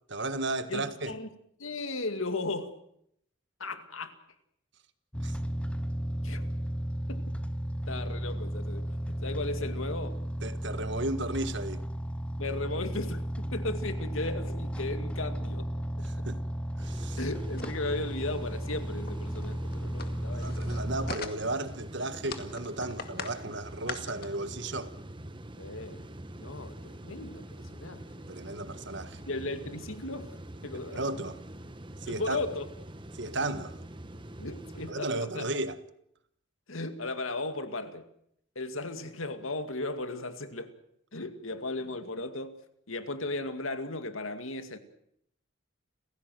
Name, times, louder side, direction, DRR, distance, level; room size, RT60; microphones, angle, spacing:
voice 1, 0.1-1.1 5.2-5.4 10.4-11.8 16.0-16.4 16.8-17.2 20.3-24.9 28.3-29.2 30.9-31.4 32.0-32.4 33.1-33.8 34.9-35.8, right 2 dB, 55° right, 1.6 m, -34 dB
voice 2, 0.7-1.3 1.6-2.7 3.6-4.2 6.2-6.5 7.1-7.4 7.9-10.2 12.4-16.3 17.2-20.6 25.6-26.1 26.4-28.3 29.3-30.4 30.6-31.0 32.1-32.7 34.4-35.5 36.7-38.1 38.6-40.7 41.1-42.6 42.9-44.8, left 2 dB, 80° left, 2.2 m, -36 dB
sound 1, 5.1-21.2, equal, 5° left, 1.2 m, -34 dB
sound 2, 16.8-34.9, right 1 dB, 25° right, 1.3 m, -45 dB
sound 3, 17.6-17.9 18.3-18.4 18.7-18.8 19.1-19.2 19.4-21.7 22.1-23.4 23.7-24.3, left 5 dB, 45° left, 2.2 m, -41 dB
29.5 x 16.0 x 7.8 m
head